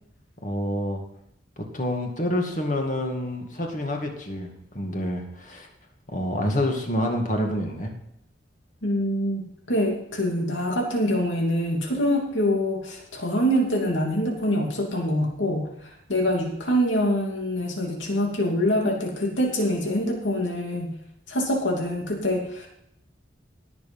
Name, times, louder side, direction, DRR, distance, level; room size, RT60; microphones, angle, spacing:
voice 1, 0.4-1.0 1.6-5.7 6.1-7.9, left 1 dB, 40° left, 2 dB, 2.2 m, -28 dB
voice 2, 8.8-20.9 21.3-22.7, equal, 85° left, 0 dB, 2.8 m, -25 dB
17.0 x 6.8 x 5.5 m, 0.77 s
head